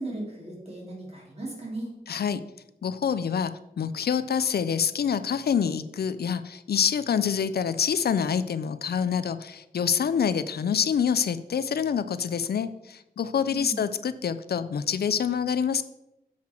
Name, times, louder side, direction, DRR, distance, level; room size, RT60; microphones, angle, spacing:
voice 1, 0.0-1.9 13.5-13.8, right 2 dB, 40° right, -3 dB, 2.9 m, -36 dB
voice 2, 2.1-2.4 2.8-15.8, left 7 dB, 75° left, 13 dB, 0.4 m, -26 dB
7.5 x 5.7 x 4.4 m, 0.87 s
wide cardioid pair, 85°, 17 cm